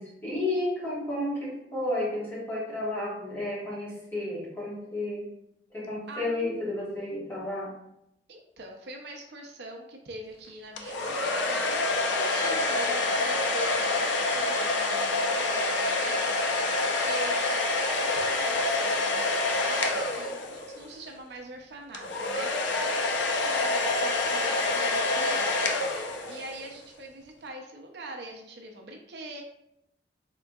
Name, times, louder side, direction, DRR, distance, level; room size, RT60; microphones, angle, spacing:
voice 1, 0.0-5.3 5.7-7.7, left 1 dB, 15° left, -7 dB, 1.3 m, -32 dB
voice 2, 6.1-6.4 8.3-29.4, right 2 dB, 65° right, 2 dB, 0.5 m, -42 dB
sound 1, 10.8-20.9 21.9-26.7, left 2 dB, 90° left, 0.5 m, -27 dB
3.7 x 3.5 x 2.2 m, 0.83 s
head